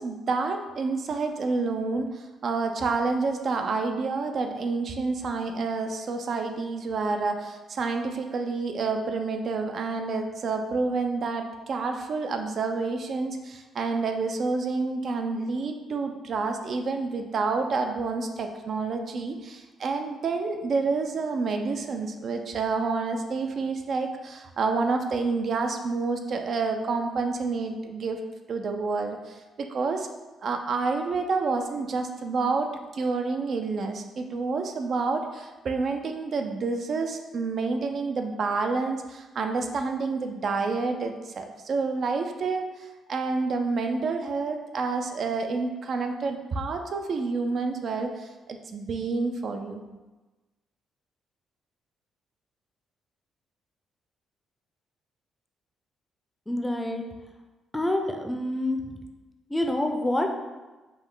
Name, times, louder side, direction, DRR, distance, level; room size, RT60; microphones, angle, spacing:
voice 1, 0.0-28.2 28.5-30.1 30.4-49.8, right 4 dB, 55° right, 5 dB, 0.4 m, -29 dB
voice 2, 56.5-57.1 57.7-58.8 59.5-60.3, left 1 dB, 10° left, 3 dB, 0.5 m, -27 dB
5.3 x 2.1 x 3.7 m, 1.2 s
cardioid pair, 90°, 0 cm